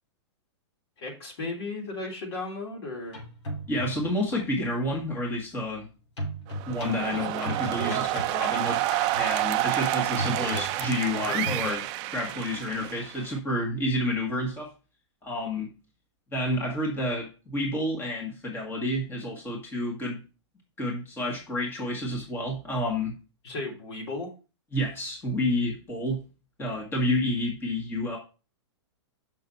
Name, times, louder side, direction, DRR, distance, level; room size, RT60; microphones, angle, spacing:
voice 1, 1.0-3.2 10.3-10.6 11.1-11.8 23.4-24.3, left 2 dB, 65° left, -1 dB, 3.2 m, -35 dB
sound 1, 3.0-4.2 6.2-11.7, right 1 dB, 80° left, 3.2 m, -37 dB
voice 2, 3.7-5.9 6.7-8.8 9.2-11.8 12.1-14.7 15.2-15.7 16.3-20.2 20.8-23.1 24.7-26.2 26.6-28.2, left 1 dB, 15° left, -1 dB, 1.7 m, -29 dB
sound 2, 6.5-13.4, right 15 dB, 30° right, 0.4 m, -29 dB
6.3 x 6.0 x 4.1 m, 0.33 s
hypercardioid pair, 145°, 15 cm